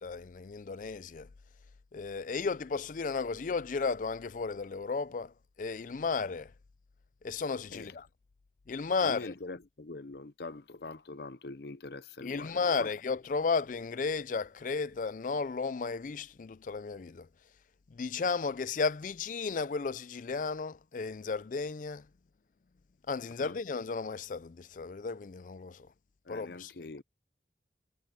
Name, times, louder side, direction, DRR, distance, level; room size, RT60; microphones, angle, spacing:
voice 1, 0.0-1.3 1.9-6.5 7.2-8.1 8.7-9.3 12.2-17.3 17.9-22.1 23.1-25.9 26.3-26.7, left 4 dB, 45° left, 0.4 m, -34 dB
voice 2, 9.0-12.9 23.4-23.6 26.2-27.0, left 3 dB, 65° left, 0.8 m, -43 dB
head